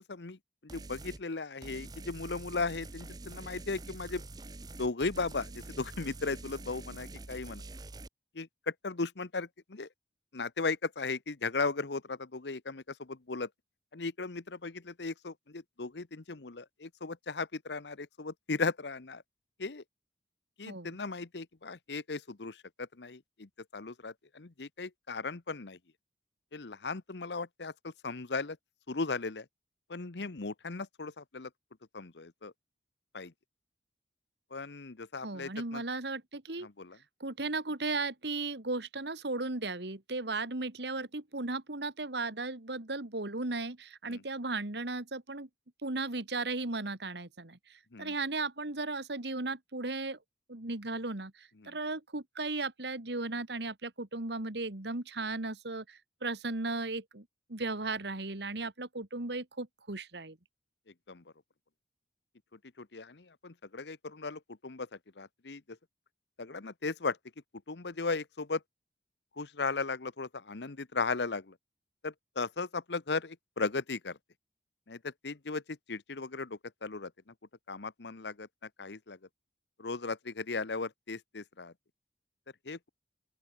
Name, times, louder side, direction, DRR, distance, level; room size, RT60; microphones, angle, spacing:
voice 1, 0.7-4.2 4.8-7.6 8.4-9.9 10.3-13.5 13.9-19.2 19.6-19.8 20.6-22.6 23.0-25.8 26.5-28.6 28.9-29.4 29.9-31.5 31.9-32.5 33.1-33.3 34.5-35.8 36.6-37.0 44.1-44.2 47.9-48.1 51.6-51.7 61.1-61.2 62.8-64.9 65.2-65.6 66.4-67.2 67.7-68.6 69.4-71.5 72.0-74.2 74.9-75.0 75.2-75.6 75.9-77.1 77.7-78.5 78.8-79.2 79.8-81.7 82.7-82.8, left 3 dB, 75° left, 1.0 m, -36 dB
sound 1, 0.7-1.2 1.6-8.1, right 2 dB, 20° right, 0.8 m, -46 dB
voice 2, 20.6-21.0 35.2-36.7 37.2-45.5 45.8-50.2 50.5-60.4, right 3 dB, 75° right, 2.0 m, -36 dB
open air
head